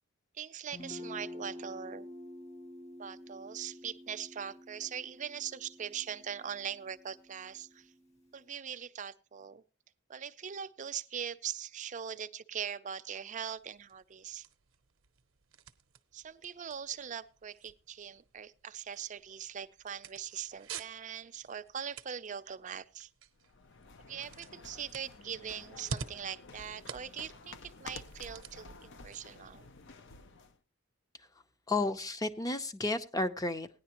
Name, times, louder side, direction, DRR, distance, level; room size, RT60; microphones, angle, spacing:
voice 1, 0.3-2.1 3.0-7.9 8.3-9.6 10.1-14.5 16.1-23.1 24.1-29.7, right 8 dB, 35° right, 0.5 m, -41 dB
Guitar, 0.7-8.4, left 1 dB, 35° left, 1.6 m, -49 dB
sound 1, 13.6-30.5, right 5 dB, 70° right, 0.7 m, -50 dB
sound 2, 23.4-30.6, left 3 dB, 60° left, 0.6 m, -51 dB
voice 2, 31.7-33.7, left 2 dB, 20° left, 0.6 m, -32 dB
17.0 x 10.0 x 2.9 m
head